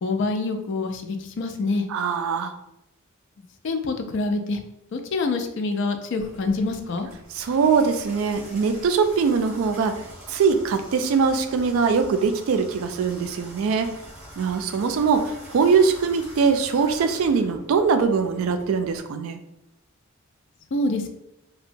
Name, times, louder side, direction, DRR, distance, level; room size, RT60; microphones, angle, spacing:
voice 1, 0.0-1.8 3.6-4.6 4.9-7.1 20.7-21.1, left 3 dB, 60° left, 6 dB, 0.4 m, -26 dB
voice 2, 1.9-2.5 7.3-9.9 10.3-13.9 14.4-19.4, right 5 dB, 70° right, 7 dB, 0.3 m, -22 dB
Water tap faucet / Bathtub (filling or washing), 6.2-19.0, equal, 20° right, 1.3 m, -44 dB
2.8 x 2.1 x 2.5 m, 0.84 s
head